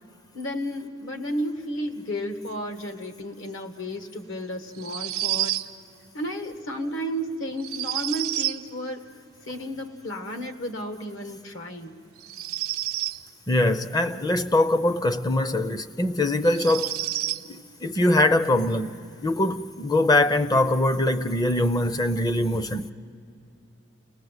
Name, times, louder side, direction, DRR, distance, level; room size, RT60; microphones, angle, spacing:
voice 1, 0.3-5.5 6.1-9.1 9.5-11.9, equal, 65° left, 1.5 m, -32 dB
sound 1, 4.7-5.7 7.6-8.6 12.2-13.2 15.4-15.5 16.4-17.4, right 14 dB, 85° right, 0.7 m, -29 dB
voice 2, 13.5-17.0 17.5-18.9 19.2-22.9, left 1 dB, 20° left, 0.6 m, -22 dB
30.0 x 20.0 x 8.1 m
head